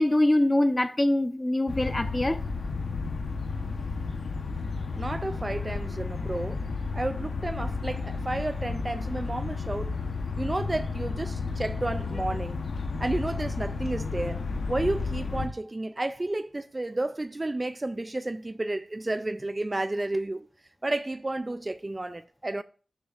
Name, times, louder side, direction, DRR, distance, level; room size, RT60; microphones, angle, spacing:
voice 1, 0.0-2.4, left 1 dB, 20° left, 0.8 m, -23 dB
sound 1, 1.7-15.5, left 4 dB, 65° left, 1.0 m, -32 dB
voice 2, 5.0-6.7 6.9-9.9 10.4-12.6 13.0-20.5 20.8-22.6, right 2 dB, 25° right, 0.3 m, -31 dB
11.0 x 10.0 x 2.5 m
wide cardioid pair, 95°, 0 cm